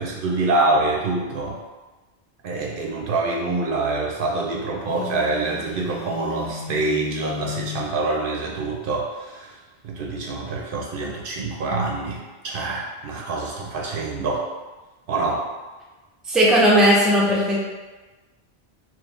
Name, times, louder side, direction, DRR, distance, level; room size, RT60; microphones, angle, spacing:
voice 1, 0.0-1.6 2.4-9.5 9.8-14.5 15.1-15.5, right 3 dB, 65° right, -1 dB, 0.7 m, -25 dB
Telephone, 4.8-8.0, left 7 dB, 50° left, 0.5 m, -34 dB
voice 2, 16.3-17.6, equal, ahead, -5 dB, 0.6 m, -16 dB
3.1 x 3.1 x 3.5 m, 1.2 s
omnidirectional pair, 1.0 m